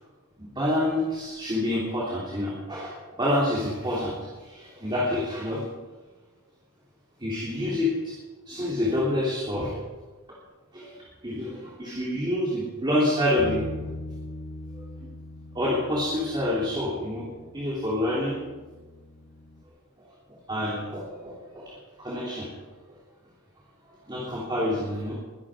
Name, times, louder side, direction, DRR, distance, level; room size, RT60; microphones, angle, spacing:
voice 1, 0.4-5.6 7.2-8.1 8.4-9.7 10.7-13.9 14.7-14.8 15.5-17.3 17.5-18.4 20.5-21.7 22.0-23.0 24.1-25.1, left 1 dB, 20° right, -6 dB, 3.3 m, -28 dB
Bass guitar, 13.4-19.6, left 2 dB, 50° left, 1.0 m, -41 dB
22.5 x 11.5 x 5.0 m, 1.3 s
head